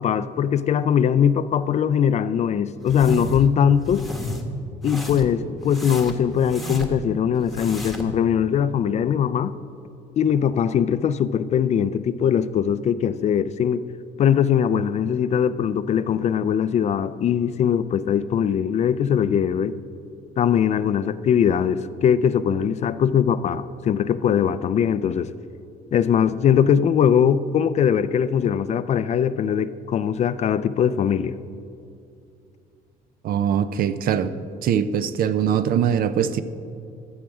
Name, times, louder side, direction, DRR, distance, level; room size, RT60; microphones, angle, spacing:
voice 1, 0.0-4.0 4.8-9.5 10.2-13.8 14.2-19.8 20.4-25.3 25.9-31.4, left 8 dB, 40° left, 15 dB, 0.4 m, -21 dB
sound 1, 2.9-3.5 3.8-4.4 4.8-5.4 5.7-7.1 7.5-8.1, left 1 dB, ahead, 1.1 m, -31 dB
voice 2, 33.2-34.3 34.6-36.4, right 8 dB, 60° right, 13 dB, 0.5 m, -22 dB
12.5 x 7.3 x 4.8 m, 2.5 s
cardioid pair, 110°, 17 cm